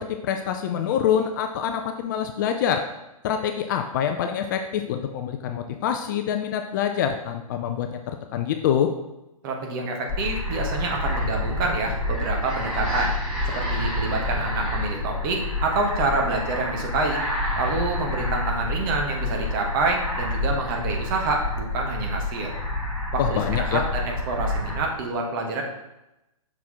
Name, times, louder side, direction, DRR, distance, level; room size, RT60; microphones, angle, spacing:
voice 1, 0.0-2.8 3.2-8.9 23.2-23.8, left 8 dB, 30° left, 6 dB, 0.4 m, -25 dB
voice 2, 9.4-13.1 13.4-17.2 17.6-22.5 23.1-25.6, right 3 dB, 35° right, 1 dB, 1.2 m, -27 dB
sound 1, 10.1-24.8, left 1 dB, ahead, 2.1 m, -28 dB
5.9 x 4.7 x 3.6 m, 0.94 s
figure-of-eight pair, 125°, 19 cm